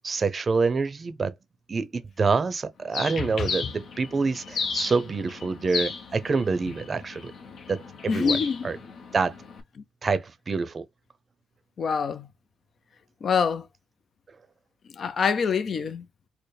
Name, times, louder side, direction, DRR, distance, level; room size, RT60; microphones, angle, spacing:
voice 1, 0.0-1.3 1.7-7.3 7.7-8.8 9.1-9.3 10.0-10.8, right 4 dB, 35° right, 0.6 m, -26 dB
Bird, 2.9-9.6, left 5 dB, 65° left, 0.8 m, -35 dB
voice 2, 3.2-3.5 8.1-8.7 11.8-12.3 13.2-13.6 15.0-16.0, left 6 dB, 50° left, 0.4 m, -25 dB
4.5 x 2.1 x 3.3 m
cardioid pair, 90°, 0 cm